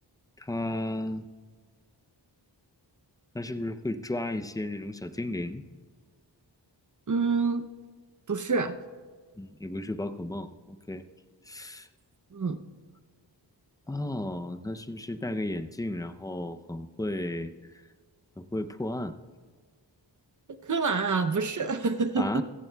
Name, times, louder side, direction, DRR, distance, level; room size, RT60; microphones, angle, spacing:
voice 1, 0.4-1.3 3.3-5.6 9.4-11.0 11.5-11.9 13.9-17.5 18.4-19.2 22.2-22.4, left 1 dB, 10° left, 9 dB, 0.5 m, -33 dB
voice 2, 7.1-7.7 8.3-8.8 12.3-12.6 20.6-22.4, right 4 dB, 45° right, 8 dB, 0.7 m, -27 dB
23.0 x 14.5 x 2.3 m, 1.5 s
wide cardioid pair, 105°, 44 cm